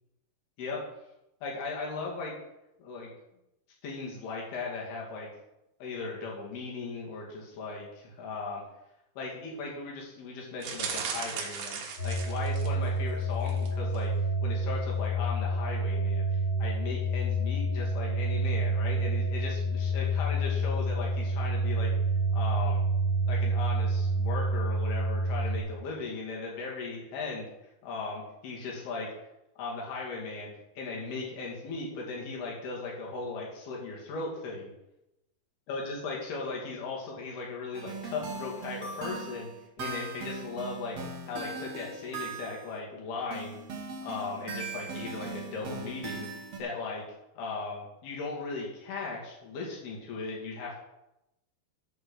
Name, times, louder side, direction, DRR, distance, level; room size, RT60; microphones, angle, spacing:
voice 1, 1.4-2.3 2.8-3.1 3.8-5.3 5.8-8.6 9.2-14.1 14.4-16.2 16.6-21.9 22.3-22.8 23.3-27.5 27.8-29.1 29.6-30.5 30.8-34.7 35.7-39.5 39.8-43.6 44.0-46.3 46.6-47.0 47.3-50.8, left 4 dB, 75° left, -2 dB, 4.3 m, -37 dB
sound 1, 10.6-12.9 13.4-13.7 14.0-14.1, right 6 dB, 85° right, 3.4 m, -37 dB
sound 2, 12.0-25.6, right 1 dB, 30° left, 0.9 m, -28 dB
sound 3, 37.7-42.8 43.3-46.6, right 4 dB, 60° right, 1.9 m, -39 dB
13.0 x 4.7 x 6.3 m, 0.91 s
omnidirectional pair, 4.7 m